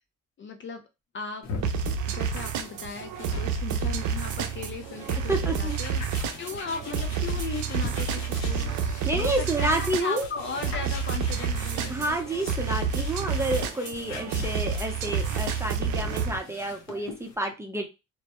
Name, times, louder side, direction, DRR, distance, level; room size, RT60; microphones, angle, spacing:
voice 1, 0.4-0.8 1.1-1.4 2.1-6.0 6.3-8.8 9.1-12.2, left 5 dB, 40° left, 5 dB, 0.4 m, -37 dB
sound 1, 1.4-17.4, left 4 dB, 60° left, 0.8 m, -42 dB
sound 2, 1.6-16.4, right 6 dB, 80° right, 0.5 m, -29 dB
voice 2, 5.3-5.8 9.1-10.3 11.9-17.9, right 1 dB, 10° right, 2 dB, 0.6 m, -29 dB
2.2 x 2.1 x 2.8 m, 0.25 s
cardioid pair, 90°, 30 cm